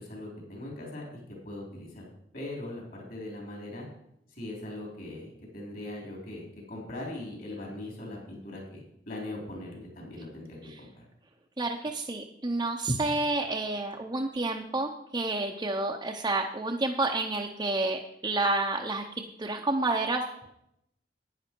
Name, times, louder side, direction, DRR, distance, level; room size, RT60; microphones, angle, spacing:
voice 1, 0.0-2.1 2.3-3.9 4.3-11.0, left 1 dB, 50° left, -1 dB, 3.6 m, -40 dB
voice 2, 11.6-19.0 19.4-20.5, right 2 dB, 20° right, 0 dB, 0.7 m, -29 dB
11.0 x 9.5 x 4.5 m, 0.79 s
head